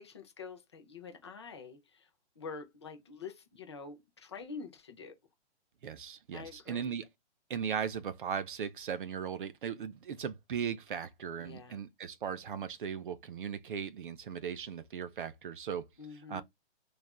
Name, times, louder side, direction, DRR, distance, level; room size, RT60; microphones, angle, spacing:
voice 1, 0.0-2.1 2.4-5.2 6.3-6.9 11.4-11.8 16.0-16.4, left 5 dB, 25° left, 0.4 m, -46 dB
voice 2, 5.8-7.1 7.5-15.8 16.3-16.4, right 7 dB, 50° right, 0.4 m, -38 dB
3.3 x 2.4 x 2.3 m
hypercardioid pair, 145°, 35 cm